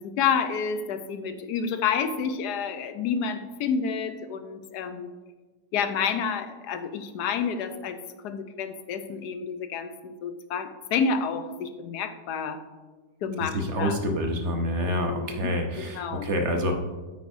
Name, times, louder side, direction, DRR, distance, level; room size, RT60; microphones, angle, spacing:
voice 1, 0.0-5.1 5.7-8.0 8.2-12.6 13.2-14.2 14.8-15.5 15.8-16.3, left 6 dB, 75° left, 9 dB, 1.2 m, -29 dB
voice 2, 13.4-16.7, equal, 55° right, 4 dB, 0.9 m, -27 dB
9.3 x 8.2 x 2.6 m, 1.3 s
omnidirectional pair, 1.8 m